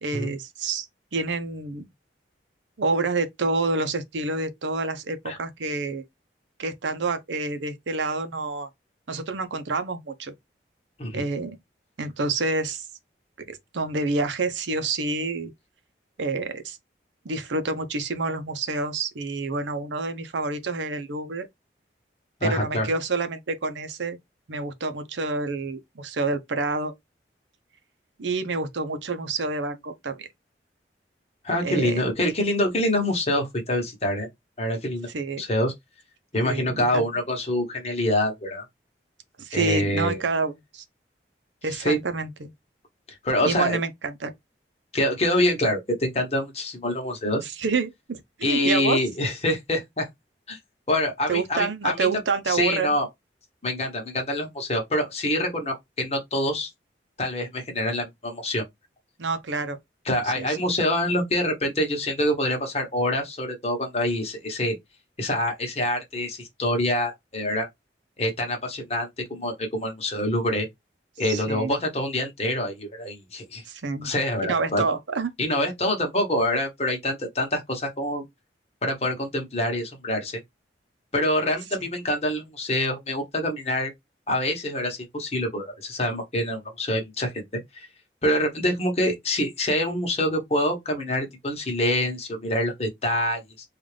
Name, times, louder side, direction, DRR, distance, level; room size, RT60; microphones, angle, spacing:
voice 1, 0.0-1.8 2.8-6.0 6.6-8.7 9.1-10.3 11.1-11.6 12.0-12.8 13.5-15.5 16.2-16.8 17.2-21.5 22.4-24.2 24.5-26.9 28.2-30.3 31.6-32.0 35.1-35.4 36.4-37.0 39.4-40.8 41.6-42.5 43.4-44.3 47.4-49.0 51.3-53.0 59.2-59.8 60.4-60.6 71.3-71.7 73.7-74.1 74.4-75.3, right 3 dB, 90° right, 0.7 m, -28 dB
voice 2, 22.4-22.9 31.4-34.3 34.6-35.1 35.4-35.7 36.3-38.7 39.5-40.2 41.7-42.0 43.2-43.8 44.9-47.4 48.4-50.1 50.5-50.6 50.9-52.1 52.5-53.1 53.6-56.7 57.2-58.6 60.1-64.8 65.2-67.7 68.2-70.7 71.2-73.6 74.0-74.8 75.4-78.2 78.8-80.4 81.1-83.9 84.3-87.3 87.7-87.9 88.2-93.4, left 1 dB, 35° left, 1.1 m, -26 dB
3.8 x 2.5 x 3.3 m
head